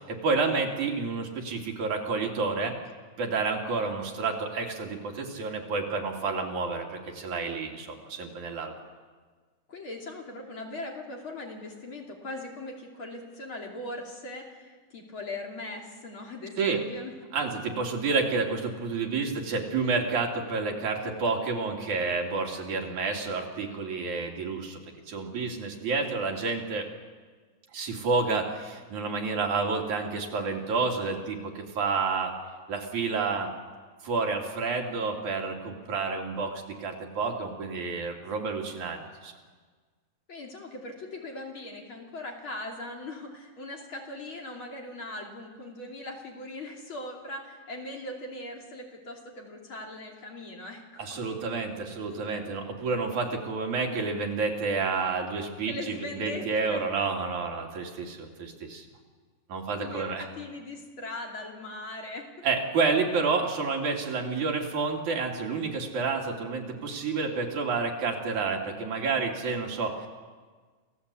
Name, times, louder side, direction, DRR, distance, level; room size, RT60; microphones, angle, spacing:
voice 1, 0.0-2.8 3.2-8.7 16.6-16.8 17.3-24.8 25.1-26.9 27.7-32.4 32.7-33.5 34.0-39.3 51.0-58.9 59.5-60.2 62.4-70.1, right 4 dB, 85° right, 1 dB, 4.0 m, -29 dB
voice 2, 9.7-17.1 40.3-51.3 55.7-56.9 59.8-62.3, left 2 dB, 45° left, 0 dB, 3.6 m, -40 dB
28.5 x 16.0 x 8.4 m, 1.5 s
omnidirectional pair, 3.3 m